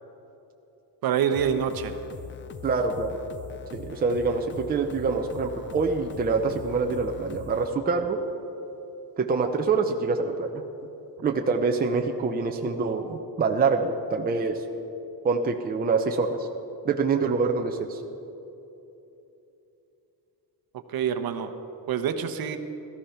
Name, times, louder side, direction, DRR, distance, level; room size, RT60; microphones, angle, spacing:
voice 1, 1.0-2.0 20.9-21.5 21.9-22.6, right 8 dB, 55° right, 8 dB, 1.1 m, -26 dB
sound 1, 1.3-7.7, left 7 dB, 25° left, 0.6 m, -42 dB
voice 2, 2.6-3.2 3.7-8.2 9.2-10.6 11.2-14.6 15.2-16.5 16.8-18.0, right 4 dB, 20° right, 3 dB, 0.7 m, -25 dB
17.5 x 13.5 x 5.8 m, 2.9 s
cardioid pair, 170°, 44 cm